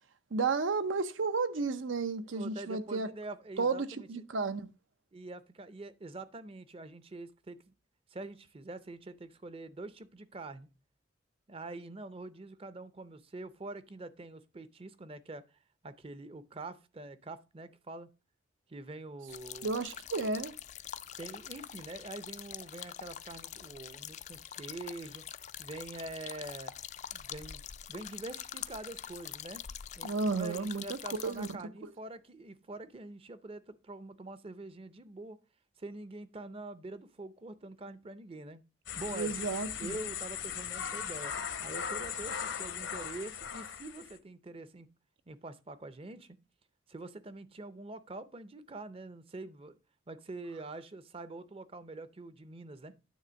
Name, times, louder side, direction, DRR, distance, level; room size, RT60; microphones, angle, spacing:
voice 1, 0.3-3.1 3.6-4.7 19.6-20.5 30.0-31.5 39.1-40.0, right 4 dB, 85° right, 0.7 m, -32 dB
voice 2, 2.3-4.1 5.1-7.6 8.1-10.7 11.5-15.4 15.8-18.1 18.7-19.7 21.2-25.2 25.6-26.7 27.1-27.6 27.9-29.6 30.0-35.4 35.8-38.6 39.0-39.5 39.8-41.3 41.6-44.9 45.3-46.4 46.9-49.8 50.1-53.0, right 2 dB, 30° right, 0.5 m, -45 dB
sound 1, 19.3-31.5, left 9 dB, 35° left, 0.3 m, -45 dB
sound 2, 38.9-44.2, left 8 dB, 80° left, 0.9 m, -38 dB
9.5 x 3.4 x 6.2 m
head